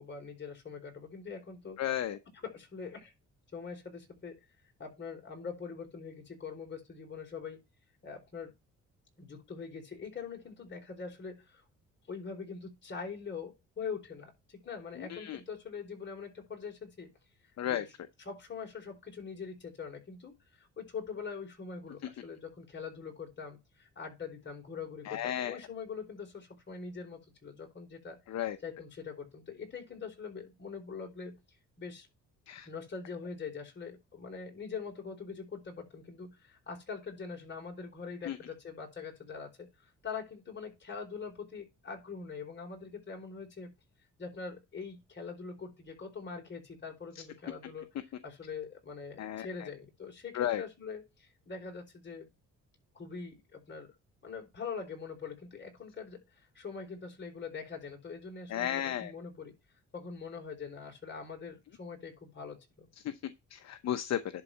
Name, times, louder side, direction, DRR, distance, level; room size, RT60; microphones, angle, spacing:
voice 1, 0.0-1.8 2.3-3.1 3.5-4.4 4.8-7.6 8.0-8.5 9.2-11.6 12.1-17.1 17.7-31.4 31.8-32.1 32.6-43.7 44.2-52.3 52.9-53.9 54.2-59.5 59.9-62.9, left 5 dB, 35° left, 4.3 m, -43 dB
voice 2, 1.8-2.2 15.1-15.4 17.6-17.8 25.1-25.6 28.3-28.6 32.5-32.7 38.3-38.4 49.2-49.5 50.4-50.6 58.5-59.1 63.5-64.2, left 11 dB, 60° left, 0.9 m, -33 dB
11.0 x 4.0 x 5.7 m
cardioid pair, 90°, 30 cm